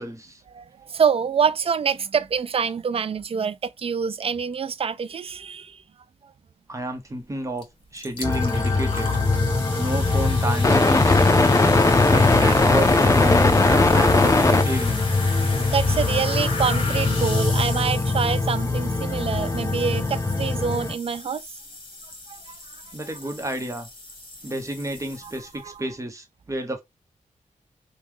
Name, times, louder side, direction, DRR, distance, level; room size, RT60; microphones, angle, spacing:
voice 1, 0.0-0.4 6.7-7.6 7.9-9.1 9.8-11.4 12.0-15.0 22.9-23.9 24.4-26.8, right 1 dB, 25° right, 1.0 m, -30 dB
voice 2, 0.5-5.8 6.2-6.3 9.7-9.8 15.4-21.4 22.3-22.8 25.2-25.8, right 6 dB, 50° right, 0.4 m, -26 dB
sound 1, 7.6-7.7 7.9-25.7, left 3 dB, 45° left, 1.4 m, -36 dB
sound 2, 8.2-20.9, left 3 dB, 25° left, 0.6 m, -20 dB
3.1 x 2.3 x 3.5 m
cardioid pair, 70°, 13 cm